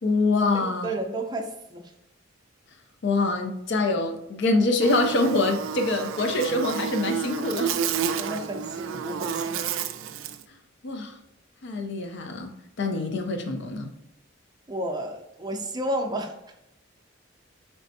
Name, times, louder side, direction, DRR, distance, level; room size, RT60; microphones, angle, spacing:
voice 1, 0.0-0.9 3.0-7.8 10.8-11.1 11.6-12.5 12.8-13.9, left 2 dB, 60° left, 0.5 m, -25 dB
voice 2, 0.5-1.9 8.2-9.7 14.7-16.3, right 1 dB, 20° right, 0.5 m, -32 dB
Buzz, 4.8-10.4, right 7 dB, 80° right, 0.3 m, -30 dB
4.2 x 3.3 x 2.6 m
head